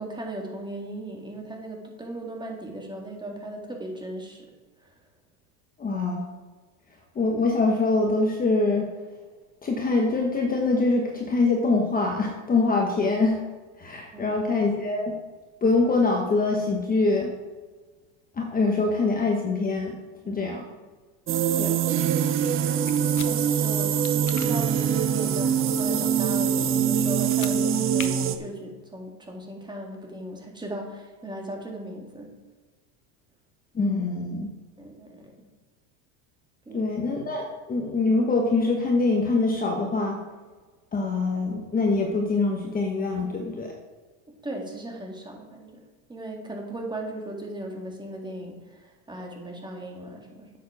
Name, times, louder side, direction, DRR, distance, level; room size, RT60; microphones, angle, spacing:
voice 1, 0.0-4.5 4.8-5.0 14.1-14.4 20.2-20.5 21.3-22.1 23.1-32.3 34.8-35.4 36.7-37.0 44.3-45.8 46.1-50.5, right 1 dB, 10° right, 0 dB, 2.0 m, -37 dB
voice 2, 5.8-6.3 7.1-8.9 9.6-13.4 13.8-15.1 15.6-17.3 18.4-20.0 20.3-20.6 21.6-21.8 33.7-34.5 36.7-40.2 40.9-43.7, left 3 dB, 20° left, 1 dB, 1.2 m, -24 dB
sound 1, 21.3-28.4, right 8 dB, 30° right, 0.7 m, -24 dB
sound 2, 22.9-23.3 24.0-24.5 27.2-27.6 28.0-28.1, left 11 dB, 45° left, 1.0 m, -37 dB
9.2 x 7.5 x 4.8 m, 1.4 s
supercardioid pair, 125°, 44 cm